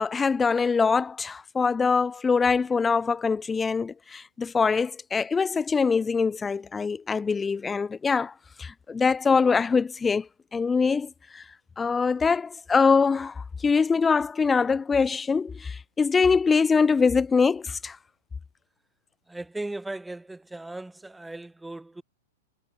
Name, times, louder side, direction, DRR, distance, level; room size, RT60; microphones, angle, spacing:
voice 1, 0.0-8.3 8.6-10.3 10.5-11.4 11.8-18.0, left 5 dB, 15° left, 0.4 m, -23 dB
voice 2, 19.3-22.0, right 2 dB, 5° right, 0.9 m, -37 dB
figure-of-eight pair, 100°, 0 cm